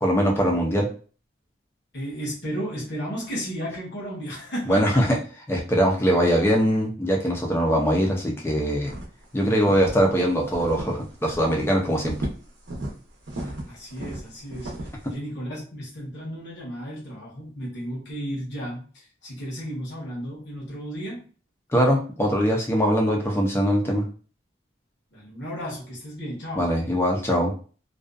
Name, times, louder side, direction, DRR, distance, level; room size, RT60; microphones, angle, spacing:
voice 1, 0.0-0.9 4.7-5.2 5.5-8.9 9.3-12.1 15.0-15.1 21.7-24.0 26.6-27.5, equal, 15° left, -1 dB, 0.5 m, -22 dB
voice 2, 1.9-5.1 13.7-21.2 25.1-26.7, equal, 60° left, -5 dB, 1.0 m, -34 dB
sound 1, 8.9-9.2 9.6-10.0 10.5-11.0 11.3-11.6 12.0-12.9 13.3-15.0, right 1 dB, 75° right, 0.7 m, -34 dB
2.6 x 2.3 x 2.3 m, 0.39 s
head